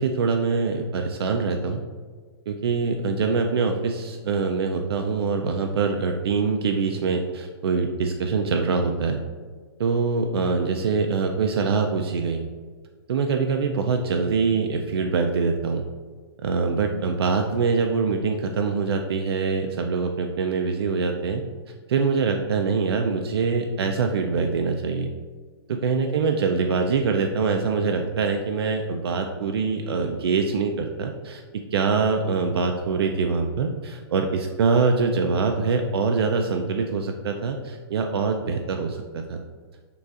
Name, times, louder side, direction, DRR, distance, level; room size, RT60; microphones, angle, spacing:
voice 1, 0.0-1.8 2.5-9.2 9.8-12.4 13.1-15.8 16.4-21.4 21.9-25.1 25.7-31.4 31.7-39.4, right 4 dB, 70° right, 4 dB, 0.4 m, -24 dB
6.6 x 2.4 x 2.4 m, 1.5 s
hypercardioid pair, 180°, 13 cm